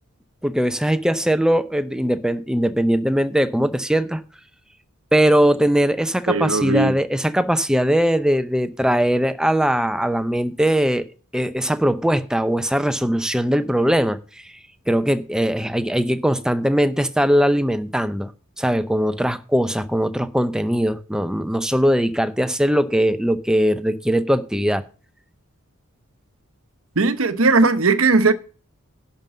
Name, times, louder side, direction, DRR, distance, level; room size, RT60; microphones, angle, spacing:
voice 1, 0.4-4.2 5.1-11.0 11.3-14.2 14.9-18.3 18.6-24.8, equal, 5° right, 0.7 m, -20 dB
voice 2, 6.3-6.9 27.0-28.3, right 3 dB, 70° right, 1.0 m, -17 dB
11.0 x 5.4 x 7.4 m
head